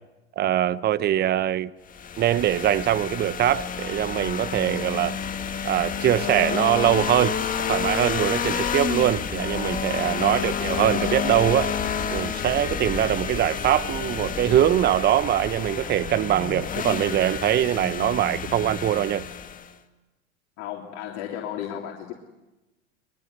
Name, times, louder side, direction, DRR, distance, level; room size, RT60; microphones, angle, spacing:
voice 1, 0.4-1.7 2.2-5.2 5.6-7.4 7.7-11.7 12.1-19.2, right 12 dB, 30° right, 0.9 m, -23 dB
sound 1, 1.9-19.7, left 7 dB, 25° left, 1.9 m, -29 dB
voice 2, 10.1-10.5 20.6-22.1, left 10 dB, 55° left, 3.3 m, -34 dB
23.0 x 22.5 x 9.4 m
hypercardioid pair, 95°, 33 cm